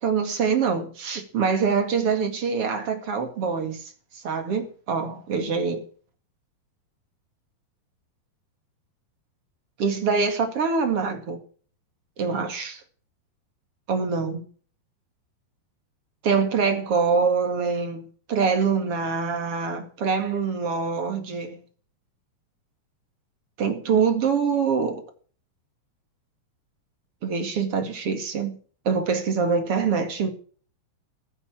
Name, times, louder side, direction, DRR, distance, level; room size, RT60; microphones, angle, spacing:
voice 1, 0.0-5.8 9.8-11.4 12.2-12.8 13.9-14.5 16.2-21.6 23.6-25.0 27.2-28.6 28.8-30.3, right 5 dB, 45° right, 2.5 m, -25 dB
15.0 x 9.9 x 6.2 m
omnidirectional pair, 4.7 m